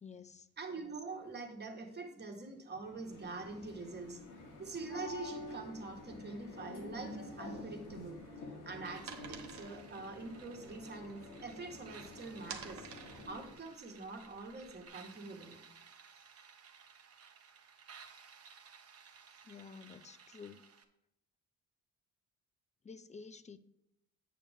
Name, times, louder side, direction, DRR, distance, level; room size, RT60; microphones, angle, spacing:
voice 1, 0.0-0.5 19.4-20.6 22.8-23.6, left 5 dB, 25° left, 14 dB, 0.5 m, -51 dB
voice 2, 0.6-4.2 4.6-8.2 8.6-12.9 13.3-15.6, right 3 dB, 35° right, 3 dB, 1.6 m, -45 dB
sound 1, 2.8-13.6, left 2 dB, 85° left, 2.0 m, -49 dB
sound 2, 7.8-11.8 12.1-14.9, right 7 dB, 75° right, 1.2 m, -51 dB
sound 3, 8.8-20.8, right 6 dB, 50° right, 1.0 m, -58 dB
8.6 x 6.9 x 3.5 m, 0.80 s
cardioid pair, 90°, 30 cm